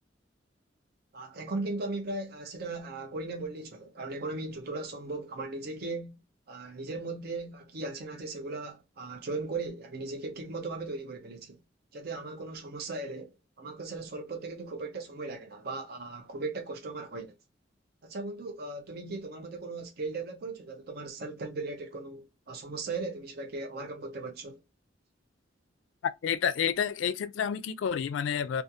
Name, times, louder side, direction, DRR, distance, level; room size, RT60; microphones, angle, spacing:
voice 1, 1.1-6.2 6.5-11.6 11.9-17.3 18.0-24.6, right 3 dB, 55° right, 0.6 m, -37 dB
voice 2, 26.2-28.6, left 7 dB, 80° left, 0.3 m, -29 dB
2.4 x 2.4 x 2.6 m
head